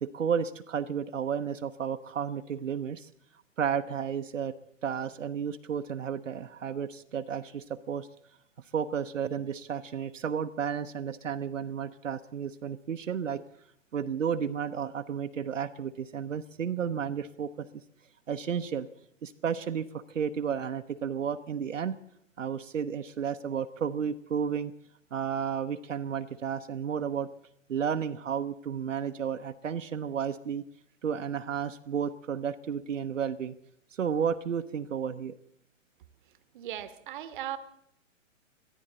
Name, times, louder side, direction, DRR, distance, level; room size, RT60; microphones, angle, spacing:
voice 1, 0.0-3.1 3.6-4.5 4.8-8.1 8.7-13.4 13.9-17.7 18.3-18.9 19.2-22.0 22.4-24.7 25.1-27.3 27.7-30.6 31.0-33.5 33.9-35.3, right 7 dB, 70° right, 7 dB, 0.8 m, -32 dB
voice 2, 36.5-37.6, right 11 dB, 40° right, 14 dB, 1.0 m, -37 dB
22.5 x 14.0 x 4.0 m, 0.74 s
figure-of-eight pair, 125°, 39 cm